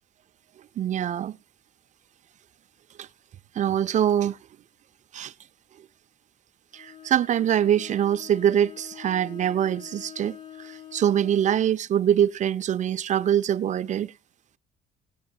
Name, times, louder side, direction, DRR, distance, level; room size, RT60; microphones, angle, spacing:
voice 1, 0.8-1.4 3.0-3.1 3.6-4.4 5.1-5.3 6.7-14.1, right 10 dB, 45° right, 0.5 m, -24 dB
Bowed string instrument, 6.7-11.7, left 9 dB, 45° left, 3.7 m, -45 dB
18.0 x 8.5 x 2.8 m
cardioid pair, 110°, 17 cm